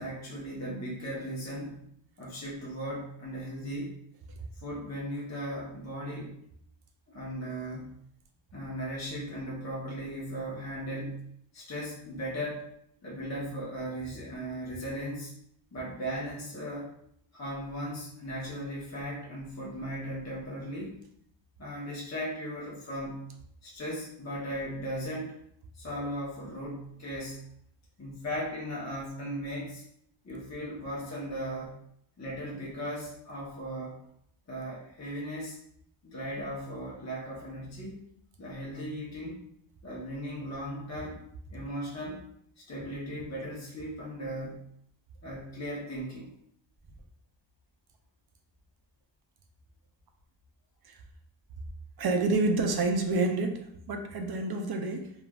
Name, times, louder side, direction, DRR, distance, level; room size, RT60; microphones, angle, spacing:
voice 1, 0.0-1.9 2.2-4.0 4.6-6.3 7.1-7.9 8.5-11.3 11.5-12.7 13.0-15.3 15.7-16.9 17.3-20.9 21.6-23.3 23.6-25.4 25.7-27.4 28.0-29.8 30.2-31.7 32.2-34.0 34.5-35.6 36.0-38.0 38.4-39.4 39.8-41.2 41.5-42.2 42.7-44.6 45.2-46.3, equal, 35° left, -5 dB, 0.8 m, -37 dB
voice 2, 52.0-55.1, right 3 dB, 50° right, 5 dB, 0.5 m, -28 dB
3.0 x 2.4 x 2.3 m, 0.70 s
wide cardioid pair, 110°, 49 cm